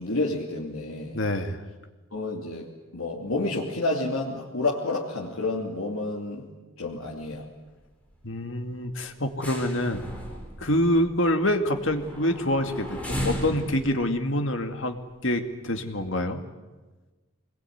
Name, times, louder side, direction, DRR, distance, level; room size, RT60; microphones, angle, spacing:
voice 1, 0.0-1.2 2.1-6.5 6.8-7.5, left 2 dB, 75° left, -3 dB, 2.9 m, -29 dB
voice 2, 1.1-1.6 8.2-10.1 10.6-15.0 15.2-16.4, left 1 dB, 60° left, 6 dB, 2.2 m, -26 dB
sound 1, 7.0-7.4 7.6-7.8 8.2-8.4 8.8-15.4 16.0-16.1, equal, 5° left, 4.6 m, -36 dB
25.5 x 21.5 x 9.5 m, 1.3 s
head